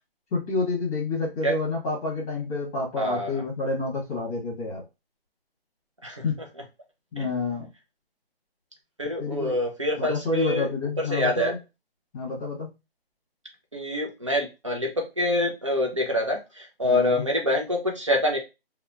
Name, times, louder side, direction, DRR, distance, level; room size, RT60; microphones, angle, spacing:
voice 1, 0.3-4.8 6.2-6.4 7.1-7.7 9.2-9.5 10.0-11.6 12.1-12.7 16.8-17.3, left 3 dB, 15° left, -6 dB, 1.0 m, -28 dB
voice 2, 3.0-3.4 6.0-6.2 7.2-7.3 9.0-10.7 11.0-11.6 13.7-18.4, left 1 dB, 30° right, 1 dB, 0.4 m, -26 dB
2.8 x 2.1 x 2.4 m, 0.26 s
hypercardioid pair, 170°, 31 cm